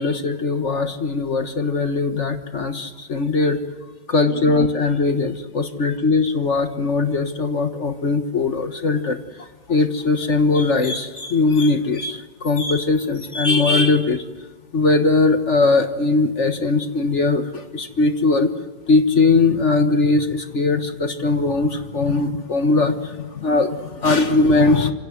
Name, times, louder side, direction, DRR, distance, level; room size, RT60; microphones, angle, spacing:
voice 1, 0.0-3.6 4.1-14.2 14.7-18.5 18.9-24.9, left 3 dB, 40° left, 8 dB, 1.6 m, -20 dB
27.0 x 26.5 x 8.1 m, 1.2 s
omnidirectional pair, 2.0 m